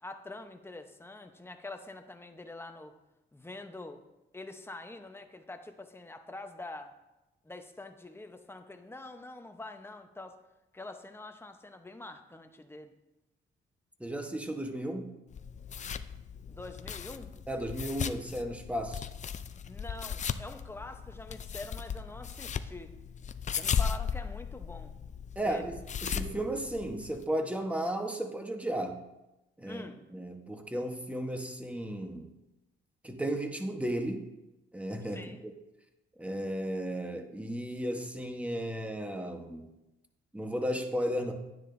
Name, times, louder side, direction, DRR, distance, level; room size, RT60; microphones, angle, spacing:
voice 1, 0.0-3.0 3.3-4.0 4.3-6.9 7.4-10.4 10.7-12.9 16.5-17.3 19.6-22.9 23.5-24.9 25.4-25.8 29.7-30.1 35.0-35.4, left 2 dB, 10° left, 6 dB, 0.9 m, -45 dB
voice 2, 14.0-15.1 17.5-19.1 25.4-29.0 29.6-29.8 30.1-32.3 33.0-34.3 34.7-35.5 36.2-39.6 40.3-41.3, right 1 dB, 5° right, 4 dB, 1.1 m, -34 dB
sound 1, 15.3-27.2, left 7 dB, 35° left, 0.5 m, -37 dB
10.5 x 9.7 x 2.7 m, 0.98 s
cardioid pair, 90°, 20 cm